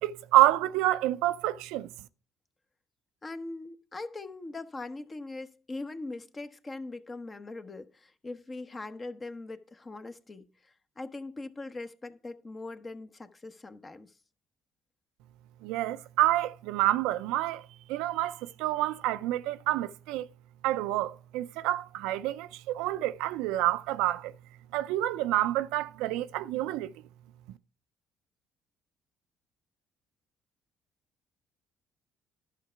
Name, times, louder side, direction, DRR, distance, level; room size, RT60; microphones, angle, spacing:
voice 1, 0.0-1.9 15.6-17.6 17.9-20.3 20.6-24.3 24.7-26.9, right 15 dB, 80° right, 0.4 m, -28 dB
voice 2, 3.2-14.1, left 2 dB, 30° left, 1.0 m, -41 dB
11.5 x 5.8 x 4.5 m
supercardioid pair, 70°, 0 cm